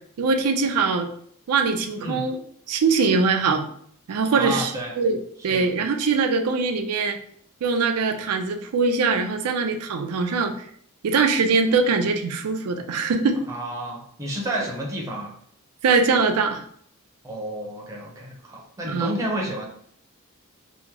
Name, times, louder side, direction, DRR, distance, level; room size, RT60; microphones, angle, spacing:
voice 1, 0.2-1.1 1.5-2.4 2.7-3.6 4.1-4.7 5.0-5.2 5.4-7.2 7.6-10.5 11.0-13.4 15.8-16.6 18.8-19.1, right 4 dB, 80° right, 6 dB, 0.4 m, -22 dB
voice 2, 2.0-2.3 4.3-4.9 5.4-5.7 13.5-15.4 17.2-19.6, right 1 dB, 15° right, -2 dB, 0.6 m, -30 dB
2.9 x 2.0 x 3.6 m, 0.63 s
head